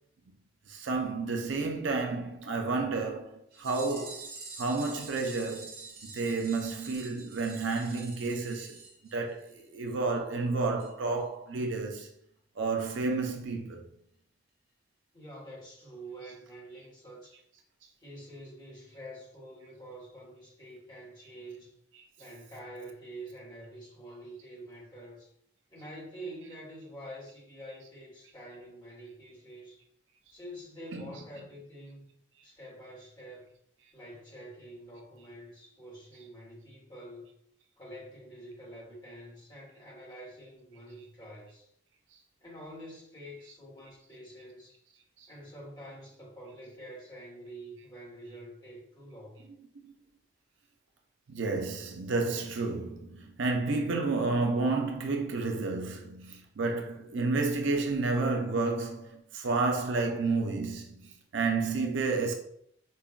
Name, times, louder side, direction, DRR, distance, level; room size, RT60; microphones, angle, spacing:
voice 1, 0.7-4.3 4.6-12.1 12.6-13.8 30.9-31.2 49.5-49.9 51.3-62.3, right 3 dB, 75° right, 0.5 m, -31 dB
sound 1, 3.5-9.7 10.0-10.1 10.3-10.4 10.8-10.9 11.2-11.3, right 3 dB, 50° right, 0.9 m, -46 dB
voice 2, 15.1-17.4 18.0-21.7 22.2-25.3 25.7-29.8 30.3-32.1 32.4-33.5 33.9-37.3 37.8-41.7 42.4-44.8 45.3-49.4, right 1 dB, 20° left, 1.3 m, -47 dB
5.2 x 2.2 x 2.3 m
head